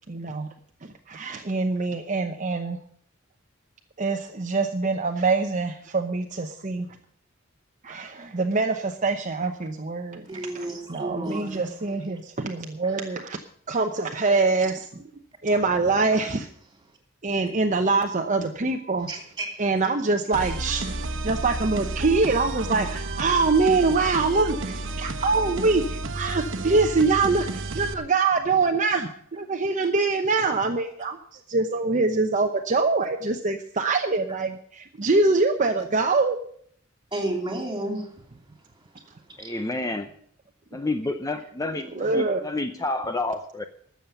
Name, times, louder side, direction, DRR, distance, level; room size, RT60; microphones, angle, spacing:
voice 1, 0.1-0.5 0.8-2.8 4.0-6.9 7.8-10.2 10.5-13.4 13.7-15.0 15.4-16.5 17.2-19.1 19.6-20.9 21.2-36.4 41.9-42.4, right 3 dB, 40° right, 4 dB, 0.8 m, -24 dB
voice 2, 10.3-11.7 19.1-19.6 37.1-38.1 39.4-39.5, right 1 dB, 20° right, 4 dB, 3.1 m, -31 dB
sound 1, 20.3-27.9, right 2 dB, 65° right, 1.2 m, -31 dB
voice 3, 39.4-40.1 40.7-43.6, left 2 dB, 15° left, 8 dB, 0.7 m, -29 dB
13.0 x 7.3 x 9.0 m, 0.63 s
head